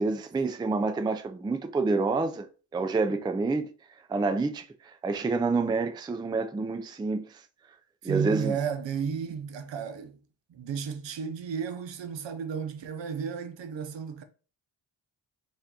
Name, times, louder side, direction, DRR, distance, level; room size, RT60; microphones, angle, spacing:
voice 1, 0.0-2.5 2.7-3.7 4.1-7.4 8.0-8.5, right 3 dB, 10° right, 0.3 m, -28 dB
voice 2, 8.0-10.2 10.5-14.2, right 6 dB, 70° right, 0.6 m, -33 dB
4.1 x 2.5 x 2.8 m
cardioid pair, 50°, 45 cm